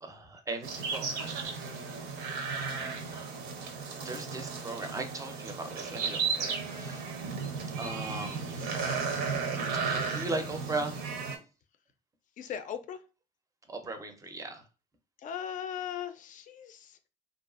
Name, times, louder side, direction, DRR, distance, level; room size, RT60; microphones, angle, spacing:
voice 1, 0.0-1.8 3.1-3.3 4.0-7.1 7.8-9.1 9.7-11.3 13.7-14.7, right 3 dB, 20° right, 0.5 m, -39 dB
sound 1, 0.6-11.4, right 5 dB, 75° right, 0.6 m, -34 dB
voice 2, 12.4-13.0 15.2-17.1, left 9 dB, 50° left, 0.4 m, -38 dB
2.5 x 2.4 x 2.4 m
cardioid pair, 110°, 17 cm